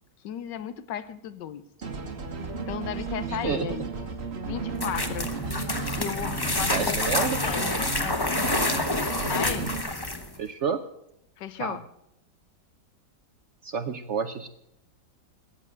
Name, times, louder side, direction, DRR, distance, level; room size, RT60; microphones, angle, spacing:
voice 1, 0.2-1.6 2.7-3.9 4.4-5.3 5.9-8.2 9.3-9.7 11.4-11.8, left 10 dB, 85° left, 15 dB, 1.5 m, -35 dB
sound 1, 1.8-9.8, right 4 dB, 40° right, 1.6 m, -34 dB
voice 2, 3.3-3.7 6.7-7.4 10.4-10.8 11.6-11.8 13.6-14.5, right 6 dB, 60° right, 11 dB, 0.8 m, -29 dB
sound 2, 4.7-10.3, left 2 dB, 15° left, 0.9 m, -28 dB
13.5 x 9.0 x 7.9 m, 0.79 s
omnidirectional pair, 1.9 m